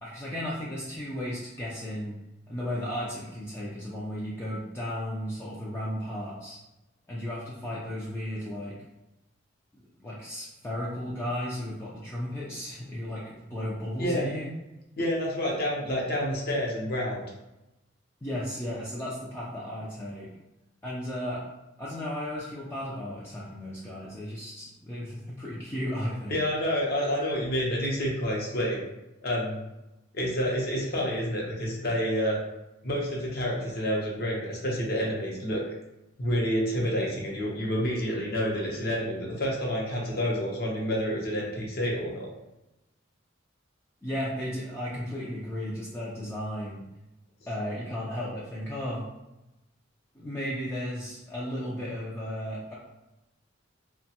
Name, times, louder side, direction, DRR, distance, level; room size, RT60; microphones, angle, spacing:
voice 1, 0.0-2.1 2.5-6.6 7.1-8.8 9.7-14.5 18.2-20.3 20.8-21.4 21.8-26.4 44.0-46.8 47.5-49.0 50.1-52.7, equal, 10° left, -7 dB, 0.4 m, -34 dB
voice 2, 15.0-17.2 26.3-28.8 29.2-29.6 30.1-32.4 32.8-35.6 36.2-42.3, equal, 50° left, -3 dB, 0.7 m, -28 dB
2.8 x 2.2 x 2.8 m, 0.96 s
head